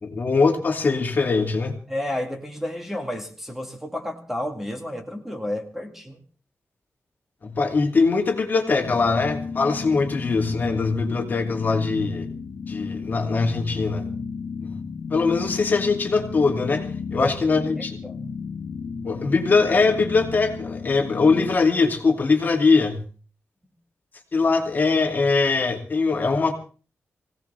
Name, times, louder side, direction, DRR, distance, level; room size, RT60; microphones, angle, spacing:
voice 1, 0.0-1.7 7.4-12.3 12.7-14.0 14.6-14.7 15.1-18.0 19.0-23.0 24.3-26.5, left 4 dB, 40° left, 4 dB, 2.4 m, -22 dB
voice 2, 1.9-6.2 17.1-17.3 17.8-18.4, left 1 dB, 5° right, 4 dB, 1.9 m, -31 dB
sound 1, 8.8-21.6, left 5 dB, 80° left, 1.5 m, -33 dB
23.5 x 17.0 x 3.4 m, 0.38 s
wide cardioid pair, 170°, 5 cm